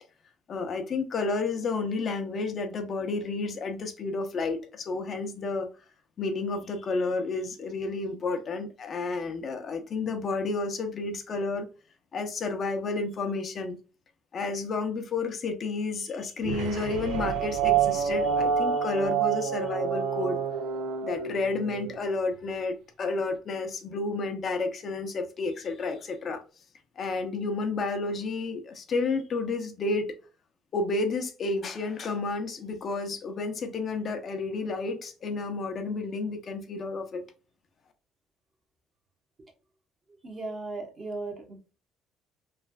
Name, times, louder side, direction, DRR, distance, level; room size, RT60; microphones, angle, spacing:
voice 1, 0.5-5.7 6.2-11.7 12.1-13.8 14.3-20.4 21.0-26.4 27.0-30.1 30.7-37.2, left 3 dB, 50° left, 0.6 m, -31 dB
sound 1, 16.4-22.0, right 7 dB, 85° right, 0.4 m, -28 dB
voice 2, 40.2-41.8, right 3 dB, 40° right, 1.1 m, -37 dB
3.2 x 2.4 x 2.3 m
cardioid pair, 95°, 0 cm